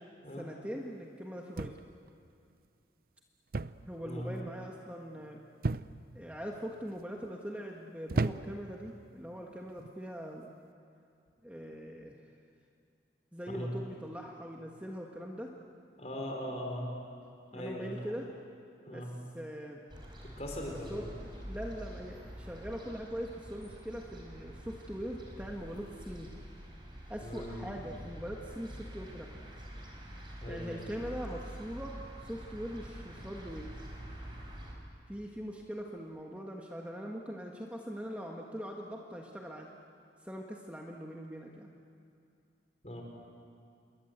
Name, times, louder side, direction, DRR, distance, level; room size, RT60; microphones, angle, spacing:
voice 1, 0.4-1.8 3.9-5.4 6.1-10.5 11.4-12.2 13.3-15.5 17.5-18.3 18.9-19.0 19.3-19.8 20.9-21.1 21.4-26.3 27.1-29.4 30.5-33.7 35.1-39.7 40.2-41.7, equal, 10° right, -1 dB, 1.5 m, -42 dB
Hand arm forearm impact on tile porcelain bathroom sink, 1.6-2.1 3.5-3.9 4.2-4.6 5.6-6.2 6.9-7.3 8.1-8.7 9.7-10.0, right 3 dB, 50° right, 0.5 m, -34 dB
voice 2, 16.0-16.9 17.5-18.1 18.9-19.1 20.4-21.1 27.2-27.6 30.4-30.9 42.8-43.0, equal, 35° left, 1 dB, 4.9 m, -39 dB
sound 1, 19.9-34.7, equal, 25° right, 4.6 m, -46 dB
28.0 x 22.5 x 8.2 m, 2.5 s
head